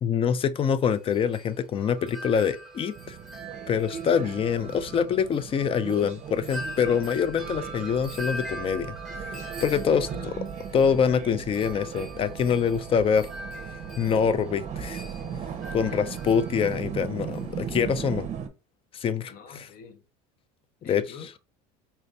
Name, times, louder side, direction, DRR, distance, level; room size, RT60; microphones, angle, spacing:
voice 1, 0.0-3.2 3.7-9.0 9.6-10.1 10.7-13.3 14.0-15.1 15.7-18.3 18.9-19.3 20.8-21.0, left 7 dB, 30° left, 0.4 m, -25 dB
Wind chime, 0.8-17.7, right 2 dB, ahead, 1.4 m, -42 dB
sound 1, 2.9-18.5, right 7 dB, 35° right, 0.7 m, -38 dB
voice 2, 9.9-10.4 15.8-16.1 19.3-20.0 20.8-21.4, left 5 dB, 45° left, 0.9 m, -47 dB
4.4 x 2.5 x 3.3 m
supercardioid pair, 115°, 20 cm